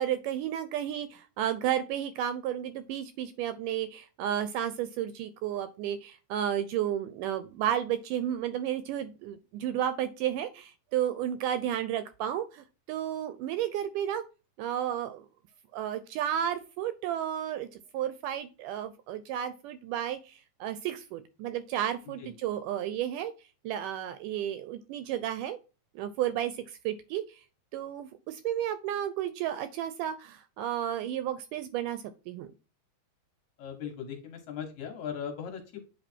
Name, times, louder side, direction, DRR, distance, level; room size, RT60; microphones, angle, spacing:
voice 1, 0.0-14.2 14.6-15.3 15.7-23.3 23.6-25.6 26.0-27.4 27.7-32.5, right 10 dB, 80° right, 12 dB, 1.9 m, -32 dB
voice 2, 33.6-35.8, left 7 dB, 65° left, 4 dB, 2.3 m, -38 dB
8.3 x 3.2 x 4.4 m, 0.32 s
omnidirectional pair, 4.0 m